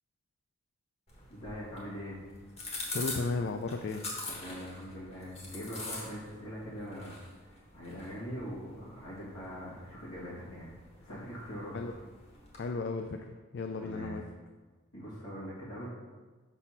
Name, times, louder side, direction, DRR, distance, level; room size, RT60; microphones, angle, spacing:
sound 1, 1.1-12.7, left 2 dB, 30° left, 1.3 m, -45 dB
voice 1, 1.3-2.2 4.3-7.2 7.7-10.7 11.0-12.0 13.8-14.2 14.9-15.9, equal, 80° left, -8 dB, 2.0 m, -42 dB
voice 2, 2.9-4.0 11.7-11.9 12.6-14.2, left 3 dB, 55° left, 5 dB, 0.3 m, -34 dB
5.5 x 4.1 x 5.8 m, 1.3 s
head